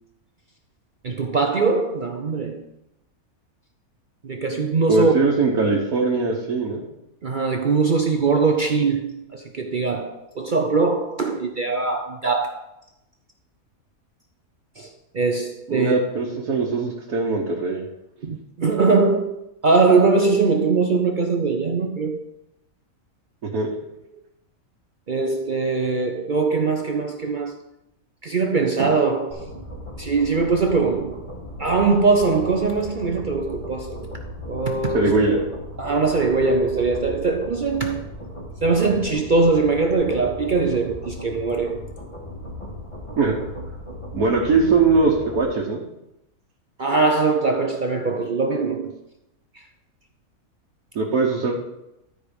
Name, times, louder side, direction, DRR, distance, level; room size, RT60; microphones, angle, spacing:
voice 1, 1.0-2.6 4.2-5.1 7.2-12.6 14.8-16.0 18.2-22.2 25.1-27.5 28.2-29.5 30.0-31.3 31.6-34.1 34.5-35.1 35.8-38.1 38.6-41.8 46.8-48.9, right 4 dB, 50° right, 0.6 m, -21 dB
voice 2, 4.9-6.8 15.7-17.8 23.4-23.7 34.9-35.4 43.2-43.3 44.1-45.8 50.9-51.5, right 3 dB, 85° right, 1.8 m, -21 dB
sound 1, 29.3-45.4, left 1 dB, 20° left, 2.0 m, -37 dB
13.0 x 5.0 x 5.2 m
omnidirectional pair, 1.5 m